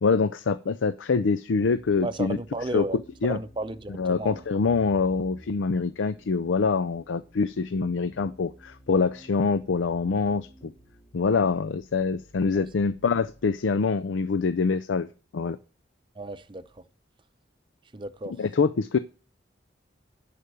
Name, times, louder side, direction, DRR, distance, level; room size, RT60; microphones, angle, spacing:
voice 1, 0.0-2.4 2.7-2.8 3.2-3.4 4.0-10.7 11.1-15.1 15.3-15.6 18.3-19.0, left 4 dB, 85° left, 0.5 m, -25 dB
sound 1, 1.6-13.6, right 1 dB, 40° left, 5.0 m, -53 dB
voice 2, 2.0-4.4 12.5-12.7 16.2-16.8 17.9-18.4, right 2 dB, 25° right, 0.6 m, -34 dB
11.0 x 5.1 x 6.8 m
head